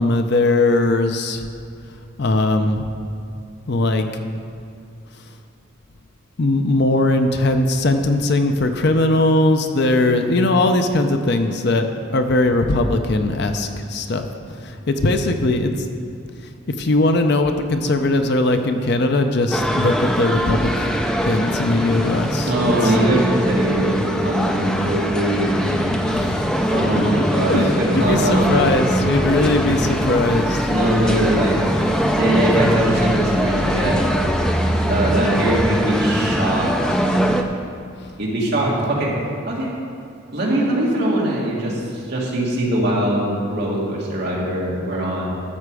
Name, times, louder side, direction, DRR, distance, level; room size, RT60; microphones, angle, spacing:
voice 1, 0.0-1.5 2.2-2.9 3.7-4.1 6.4-11.9 12.1-14.3 14.6-15.7 16.8-20.9 21.3-22.9 26.1-26.5 27.4-30.6, left 2 dB, 50° left, 6 dB, 0.6 m, -19 dB
sound 1, 19.5-37.4, equal, 5° left, 0.4 m, -22 dB
voice 2, 22.5-25.9 26.6-29.7 30.7-31.6 32.2-34.1 34.9-37.0 38.2-39.1 39.5-39.7 40.3-45.3, right 1 dB, 50° right, -5 dB, 2.1 m, -22 dB
sound 2, 28.0-35.8, equal, 10° right, 1.9 m, -30 dB
12.5 x 6.7 x 4.8 m, 2.5 s
head